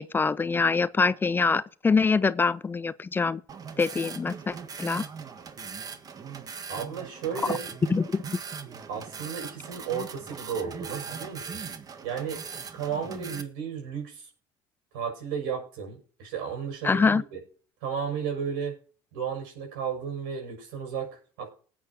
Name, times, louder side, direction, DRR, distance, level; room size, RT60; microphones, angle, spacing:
voice 1, 0.0-3.4 3.8-5.0 7.5-7.6 7.9-8.2 16.8-17.2, left 4 dB, 20° left, 0.5 m, -24 dB
sound 1, 3.5-13.4, right 6 dB, 35° right, 1.5 m, -40 dB
voice 2, 6.7-7.7 8.9-11.6 12.0-12.4 12.7-14.3 14.9-17.4 17.8-18.8 19.1-21.5, right 7 dB, 85° right, 6.7 m, -33 dB
20.0 x 8.7 x 2.8 m
supercardioid pair, 100°, 11 cm